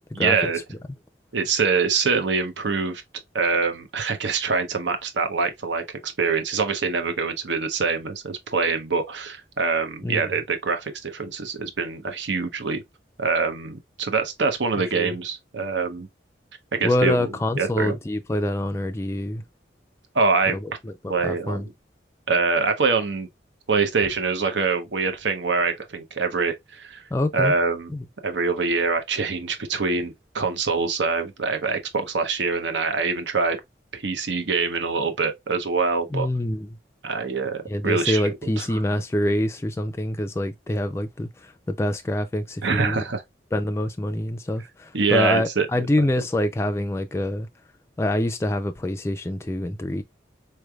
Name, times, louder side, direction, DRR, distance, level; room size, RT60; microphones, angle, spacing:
voice 1, 0.1-0.6 1.3-3.0 3.3-12.8 13.2-16.1 16.7-17.3 17.6-18.0 20.1-20.6 21.1-21.7 22.3-23.3 23.7-27.0 27.3-27.9 28.2-33.6 33.9-36.3 37.0-38.2 38.6-38.8 42.6-43.2 44.9-45.7, right 4 dB, 80° right, 0.8 m, -24 dB
voice 2, 16.8-19.4 20.6-21.6 27.1-27.5 27.9-28.0 36.1-36.7 37.7-43.0 43.5-47.5 48.0-50.0, left 1 dB, 15° left, 0.3 m, -25 dB
4.4 x 3.2 x 2.3 m
head